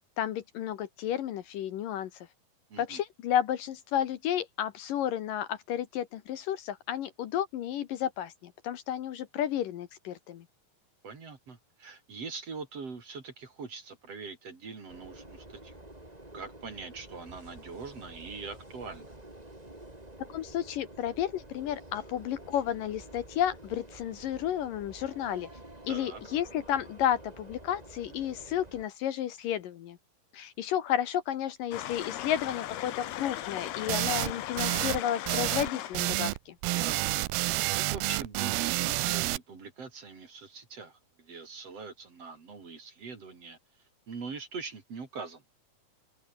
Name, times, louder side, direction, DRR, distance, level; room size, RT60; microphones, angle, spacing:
voice 1, 0.0-2.3 2.8-10.5 20.2-25.5 25.8-30.0 30.3-36.6, left 10 dB, 70° left, 2.7 m, -32 dB
voice 2, 2.7-3.0 11.0-15.8 16.3-19.1 25.9-26.2 36.6-43.6 44.1-45.4, right 4 dB, 40° right, 4.1 m, -43 dB
sound 1, 14.9-28.8, right 1 dB, 10° right, 3.8 m, -49 dB
sound 2, 31.7-36.0, left 13 dB, 90° left, 3.5 m, -38 dB
sound 3, 33.9-34.3 34.6-35.0 35.3-35.7 35.9-36.4 36.6-39.4, right 20 dB, 85° right, 2.6 m, -29 dB
open air
omnidirectional pair, 4.4 m